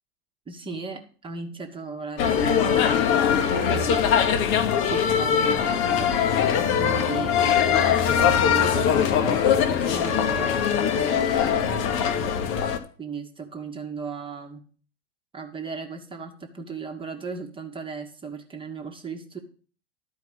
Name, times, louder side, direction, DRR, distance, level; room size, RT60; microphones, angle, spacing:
voice 1, 0.5-4.0 4.8-6.2 6.8-10.5 10.9-12.2 13.0-14.6 15.3-19.4, right 5 dB, 15° right, 3 dB, 1.3 m, -36 dB
sound 1, 2.2-12.8, left 8 dB, 40° left, 1.2 m, -22 dB
12.0 x 4.7 x 6.4 m, 0.41 s
hypercardioid pair, 100°, 32 cm